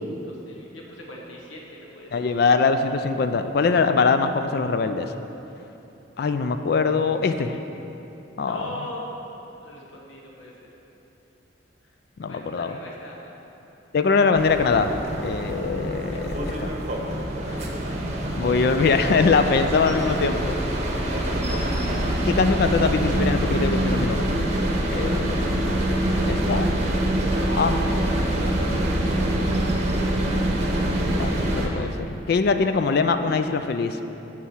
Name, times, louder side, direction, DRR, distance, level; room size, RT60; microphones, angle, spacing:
voice 1, 0.2-2.4 8.4-9.2 9.6-10.5 12.2-13.3 16.1-16.5 25.2-25.8 27.4-28.1 28.6-29.1, left 1 dB, 75° left, -2 dB, 1.2 m, -40 dB
voice 2, 2.1-5.1 6.2-7.6 8.4-8.8 12.2-12.7 13.9-15.0 15.2-16.7 18.3-20.5 22.2-24.3 24.9-25.5 26.2-26.7 27.6-27.8 31.1-34.0, left 4 dB, 50° left, 9 dB, 0.3 m, -22 dB
sound 1, 14.4-31.7, right 1 dB, 35° right, 0.9 m, -25 dB
7.2 x 4.8 x 7.0 m, 3.0 s
head